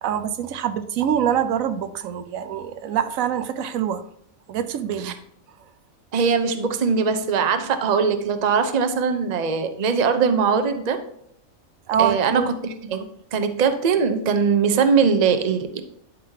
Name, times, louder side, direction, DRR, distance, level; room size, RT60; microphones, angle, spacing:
voice 1, 0.0-4.0 4.5-5.2 11.9-12.5, right 9 dB, 75° right, 11 dB, 1.0 m, -25 dB
voice 2, 6.1-11.0 12.0-15.8, right 5 dB, 40° right, 8 dB, 0.7 m, -21 dB
11.5 x 5.5 x 2.8 m, 0.73 s
omnidirectional pair, 1.4 m